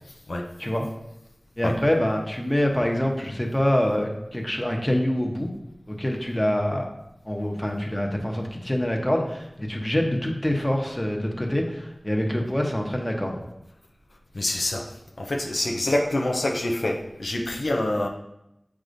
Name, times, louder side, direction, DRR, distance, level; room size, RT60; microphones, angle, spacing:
voice 1, 1.6-5.5 5.9-6.9 7.3-13.4, left 1 dB, 15° left, 1 dB, 1.0 m, -25 dB
voice 2, 14.3-14.9 15.2-18.1, left 1 dB, 85° left, 1 dB, 0.6 m, -26 dB
7.4 x 4.9 x 2.6 m, 0.86 s
wide cardioid pair, 45°, 0 cm